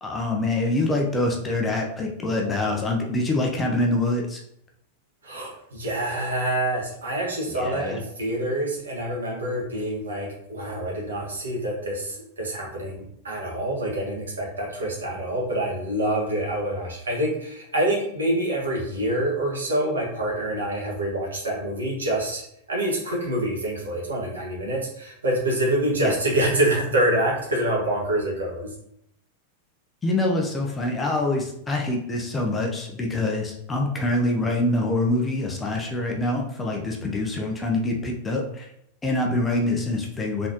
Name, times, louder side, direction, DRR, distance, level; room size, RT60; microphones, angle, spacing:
voice 1, 0.0-4.4 7.5-8.0 26.0-26.1 30.0-38.7 39.0-40.5, left 2 dB, 15° left, 0 dB, 0.8 m, -25 dB
voice 2, 5.2-22.4 22.7-28.7, right 1 dB, 70° right, -3 dB, 1.6 m, -26 dB
4.1 x 3.8 x 2.9 m, 0.74 s
figure-of-eight pair, 90°, 0 cm